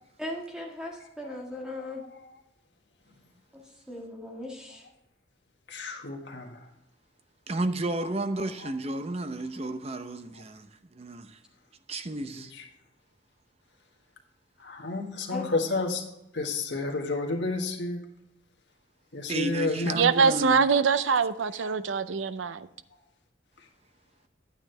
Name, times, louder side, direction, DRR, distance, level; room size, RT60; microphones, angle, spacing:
voice 1, 0.2-2.0 3.5-4.9 15.3-15.4, left 1 dB, 5° right, 1.6 m, -38 dB
voice 2, 5.7-6.7 8.6-8.7 12.3-12.6 14.6-16.0 16.3-18.0 19.1-20.0 20.7-20.8 21.6-21.7, left 3 dB, 65° left, 1.6 m, -31 dB
voice 3, 7.5-11.4 11.9-12.5 19.3-20.7, right 1 dB, 30° right, 0.6 m, -32 dB
voice 4, 19.9-22.7, right 5 dB, 85° right, 0.5 m, -24 dB
9.7 x 8.9 x 3.3 m
head